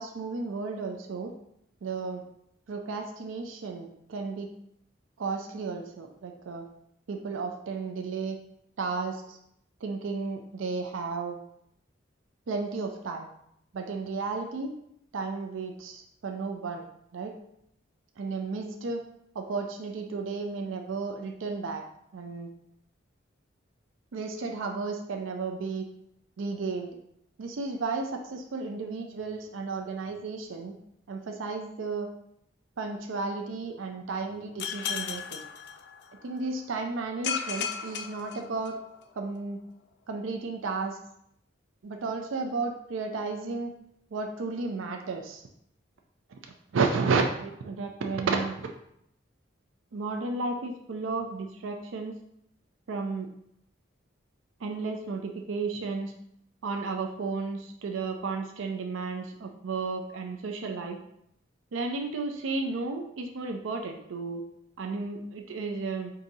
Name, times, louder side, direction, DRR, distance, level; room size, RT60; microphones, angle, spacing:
voice 1, 0.0-1.3 1.8-2.2 2.7-4.5 5.2-6.7 7.1-8.4 8.8-9.4 9.8-11.4 12.5-13.3 13.7-14.7 15.1-16.9 17.1-17.4 18.2-19.0 19.3-21.8 22.1-22.5 24.1-25.9 26.4-26.9 27.4-30.8 31.1-32.1 32.8-35.4 36.2-38.8 39.2-39.6 40.1-41.0 41.8-43.7 44.1-45.4 46.3-46.4 46.7-48.7 49.9-52.1 52.9-53.3 54.6-56.1 56.6-61.0 61.7-64.4 64.8-66.1, right 4 dB, 80° right, 4 dB, 0.5 m, -33 dB
sound 1, 34.6-36.3 37.2-39.0, left 7 dB, 55° left, 0.4 m, -35 dB
4.7 x 2.7 x 3.9 m, 0.74 s
head